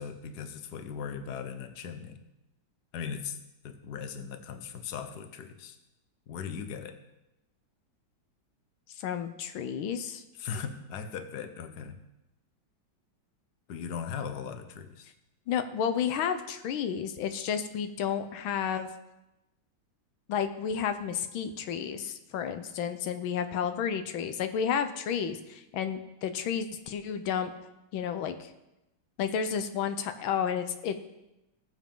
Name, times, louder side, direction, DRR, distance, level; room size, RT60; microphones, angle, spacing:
voice 1, 0.0-2.2 2.9-3.4 3.6-5.8 6.3-7.0 10.4-12.0 13.7-15.1, left 7 dB, 60° left, 8 dB, 1.4 m, -38 dB
voice 2, 9.0-10.2 15.5-18.9 20.3-27.5 27.9-28.5 29.2-31.1, left 7 dB, 90° left, 9 dB, 1.6 m, -31 dB
19.5 x 7.3 x 3.8 m, 0.94 s
omnidirectional pair, 2.1 m